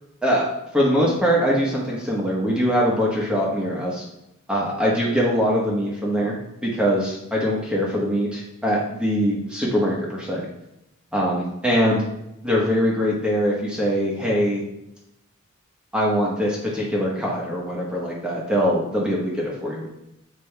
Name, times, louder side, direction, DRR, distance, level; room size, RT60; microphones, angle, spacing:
voice 1, 0.7-4.0 4.5-6.3 6.6-10.4 11.1-12.0 12.4-14.6 15.9-19.9, equal, 5° right, -4 dB, 1.2 m, -22 dB
7.6 x 5.0 x 3.4 m, 0.85 s
head